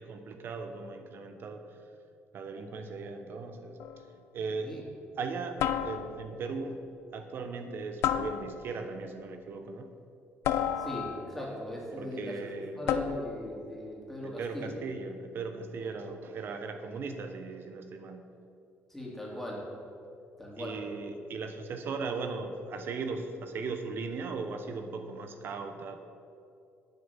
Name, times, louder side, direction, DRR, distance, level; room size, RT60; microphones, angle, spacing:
voice 1, 0.0-1.9 2.3-4.1 4.3-4.8 5.2-6.8 7.1-9.9 11.9-12.9 14.2-18.3 20.6-26.0, right 4 dB, 55° right, 7 dB, 1.0 m, -38 dB
sound 1, 3.8-4.1 5.6-6.4 8.0-8.9 10.4-11.4 12.9-13.5, left 9 dB, 75° left, 0.6 m, -31 dB
voice 2, 10.8-14.7 15.8-15.9 18.9-19.6 20.4-20.8, left 1 dB, 5° left, -4 dB, 3.1 m, -39 dB
9.6 x 7.8 x 7.2 m, 2.5 s
cardioid pair, 110°, 5 cm